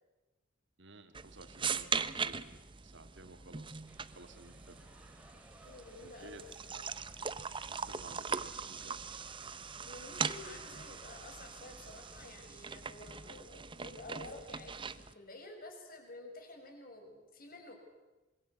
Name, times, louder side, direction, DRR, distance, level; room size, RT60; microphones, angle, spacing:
voice 1, 0.8-3.8 4.1-4.8 6.0-6.4 6.7-6.8 7.7-9.0, right 2 dB, 65° right, 8 dB, 2.6 m, -54 dB
sound 1, 1.1-15.1, right 5 dB, 25° right, 0.8 m, -41 dB
sound 2, 3.9-12.3, right 1 dB, 10° right, 3.1 m, -60 dB
voice 2, 5.6-6.8 9.8-17.8, left 2 dB, 45° left, 4 dB, 5.8 m, -51 dB
26.5 x 22.5 x 8.4 m, 1.1 s
head